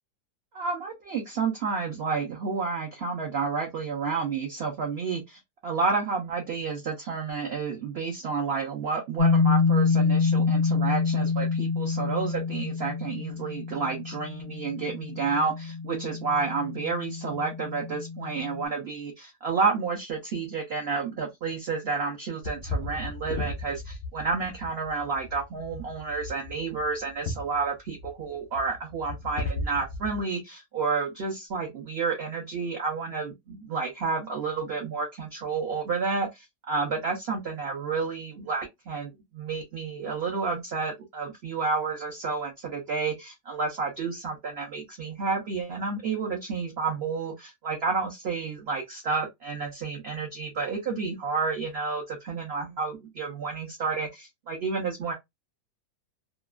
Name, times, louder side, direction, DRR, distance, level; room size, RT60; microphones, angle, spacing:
voice 1, 0.5-55.1, right 4 dB, 60° right, 0.7 m, -30 dB
sound 1, 9.2-18.6, left 4 dB, 80° left, 0.4 m, -27 dB
sound 2, 22.4-30.2, left 2 dB, 55° left, 0.7 m, -36 dB
2.9 x 2.4 x 2.3 m
omnidirectional pair, 1.8 m